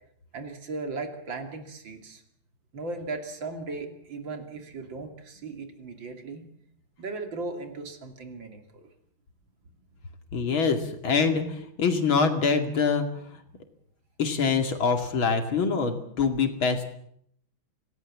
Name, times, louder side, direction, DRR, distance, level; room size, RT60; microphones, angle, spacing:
voice 1, 0.3-2.2 2.7-6.5 7.0-8.9, right 3 dB, 65° right, 5 dB, 3.4 m, -37 dB
voice 2, 10.3-13.1 14.2-16.8, left 5 dB, 80° left, 6 dB, 3.2 m, -24 dB
26.0 x 18.0 x 7.4 m, 0.68 s
omnidirectional pair, 2.2 m